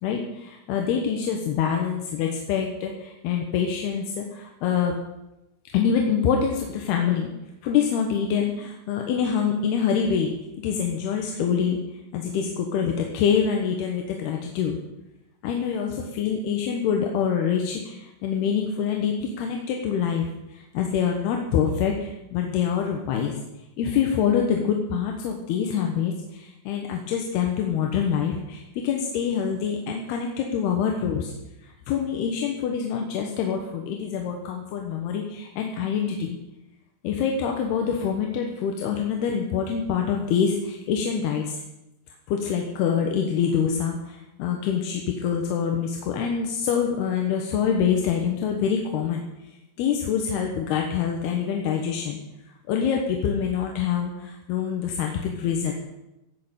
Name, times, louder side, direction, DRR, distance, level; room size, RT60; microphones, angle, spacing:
voice 1, 0.0-5.0 5.7-7.3 7.6-10.3 10.6-11.8 12.1-14.8 15.4-23.4 23.8-31.3 31.6-36.4 37.0-41.6 42.3-49.2 49.8-52.2 52.7-55.7, left 7 dB, 70° left, 2 dB, 2.8 m, -25 dB
17.0 x 6.7 x 8.2 m, 0.94 s
omnidirectional pair, 5.6 m